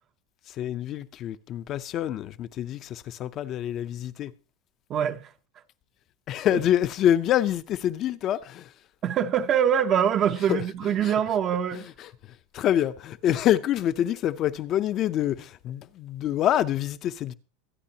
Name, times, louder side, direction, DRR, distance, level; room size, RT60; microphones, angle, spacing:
voice 1, 0.6-4.3 6.3-8.7 10.5-10.6 11.0-11.1 11.7-11.8 12.5-17.3, left 11 dB, 30° left, 0.5 m, -26 dB
voice 2, 4.9-5.3 6.5-6.6 9.0-11.9, right 9 dB, 25° right, 0.5 m, -24 dB
23.5 x 9.6 x 2.8 m
supercardioid pair, 170°, 0 cm